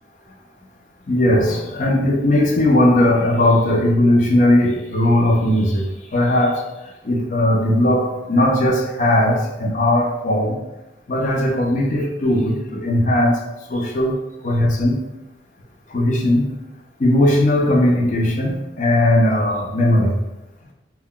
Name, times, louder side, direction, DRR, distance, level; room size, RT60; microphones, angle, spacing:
voice 1, 1.1-6.7 7.0-10.6 11.1-15.0 15.9-16.5 17.0-20.2, left 1 dB, 45° left, 0 dB, 0.5 m, -18 dB
2.2 x 2.2 x 3.7 m, 0.96 s
head